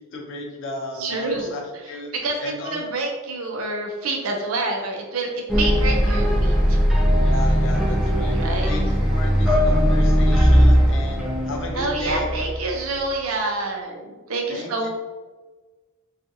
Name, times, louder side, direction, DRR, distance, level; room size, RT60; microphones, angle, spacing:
voice 1, 0.1-1.6 1.9-2.1 2.4-2.8 7.1-8.4 8.7-12.3 14.5-14.9, left 2 dB, 65° left, 0 dB, 0.6 m, -33 dB
voice 2, 1.0-1.6 2.1-6.8 8.3-8.7 11.7-14.9, right 2 dB, 80° right, 2 dB, 0.5 m, -27 dB
sound 1, 5.5-12.8, equal, ahead, 0.4 m, -19 dB
2.6 x 2.4 x 2.6 m, 1.3 s
head